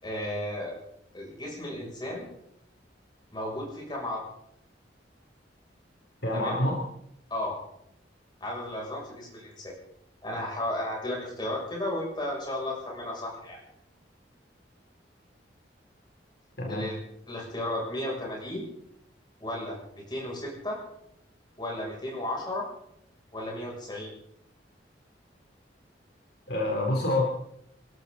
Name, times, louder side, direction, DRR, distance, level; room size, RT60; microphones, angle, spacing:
voice 1, 0.0-0.8 1.1-2.3 3.3-4.2 6.3-6.6 7.3-7.6 8.4-9.7 10.2-13.6 16.7-17.0 17.3-18.6 19.4-19.8 20.1-20.8 21.6-22.7 23.3-24.1, left 1 dB, 25° left, -2 dB, 6.8 m, -34 dB
voice 2, 6.2-6.8 16.6-16.9 26.5-27.3, left 1 dB, 60° left, 0 dB, 3.2 m, -27 dB
27.0 x 13.0 x 4.0 m, 0.73 s
head